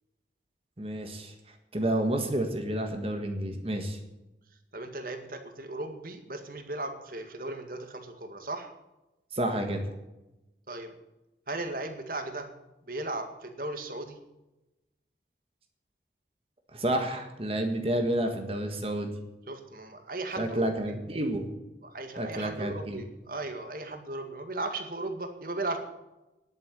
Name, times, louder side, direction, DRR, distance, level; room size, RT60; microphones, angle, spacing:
voice 1, 0.8-1.3 1.7-4.0 9.3-9.8 16.7-19.1 20.4-21.5 22.2-23.0, right 1 dB, 30° right, 4 dB, 1.6 m, -30 dB
voice 2, 4.7-8.7 10.7-10.9 11.5-12.5 12.9-14.2 19.5-20.7 21.8-25.8, right 2 dB, 50° right, 6 dB, 1.9 m, -36 dB
10.5 x 9.1 x 8.2 m, 0.99 s
head